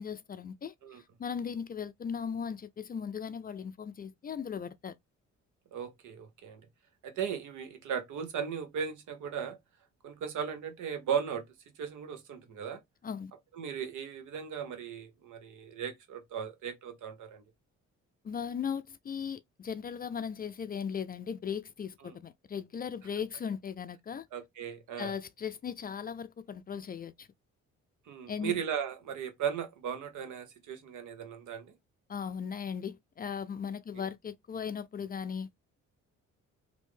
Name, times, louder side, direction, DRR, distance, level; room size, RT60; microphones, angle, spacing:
voice 1, 0.0-4.9 13.0-13.3 18.2-24.3 25.0-27.3 28.3-28.6 32.1-35.5, left 7 dB, 30° left, 0.4 m, -38 dB
voice 2, 5.7-6.6 7.0-9.6 10.0-11.4 11.8-12.8 13.5-17.4 22.0-22.2 24.3-25.1 28.1-31.7 33.9-34.1, right 7 dB, 75° right, 1.0 m, -37 dB
3.2 x 2.6 x 3.1 m
cardioid pair, 90°, 30 cm